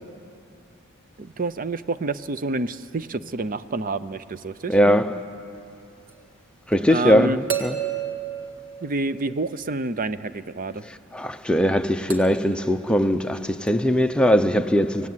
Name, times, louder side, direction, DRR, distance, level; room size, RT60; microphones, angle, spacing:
voice 1, 1.2-4.7 6.9-7.4 8.8-10.8, right 3 dB, 40° right, 0.6 m, -28 dB
voice 2, 4.7-5.2 6.7-7.8 11.1-15.1, equal, 5° left, 0.7 m, -20 dB
sound 1, 6.1-6.2 7.5-9.5 12.1-12.6 13.7-13.8, right 9 dB, 65° right, 1.9 m, -31 dB
24.5 x 17.0 x 9.7 m
head